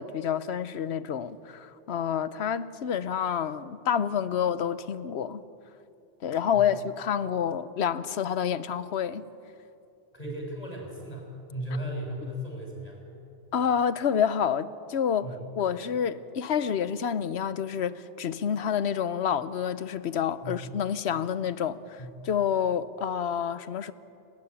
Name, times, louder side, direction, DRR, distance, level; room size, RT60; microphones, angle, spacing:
voice 1, 0.0-5.4 6.2-9.3 13.5-15.3 15.6-23.9, left 8 dB, 75° left, 1.1 m, -28 dB
voice 2, 10.1-13.0 15.2-15.4 20.4-20.7 22.0-22.3, equal, 35° left, 6.0 m, -36 dB
30.0 x 13.0 x 9.6 m
omnidirectional pair, 1.1 m